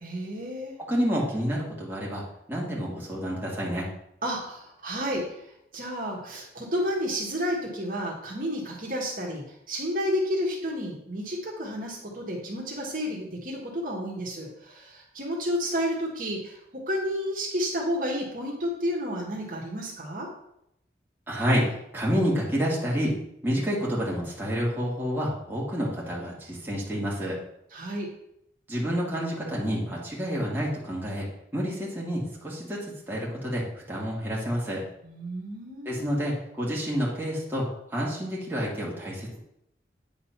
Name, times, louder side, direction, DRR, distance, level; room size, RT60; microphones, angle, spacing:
voice 1, 0.0-0.7 4.2-16.6 16.9-20.3 27.7-28.1 35.0-36.0, equal, 50° right, -2 dB, 1.6 m, -31 dB
voice 2, 0.9-2.2 2.5-3.9 21.3-23.2 23.4-27.4 28.7-31.3 31.5-34.8 35.9-39.4, equal, 10° right, -5 dB, 1.9 m, -29 dB
9.2 x 4.0 x 5.7 m, 0.78 s
head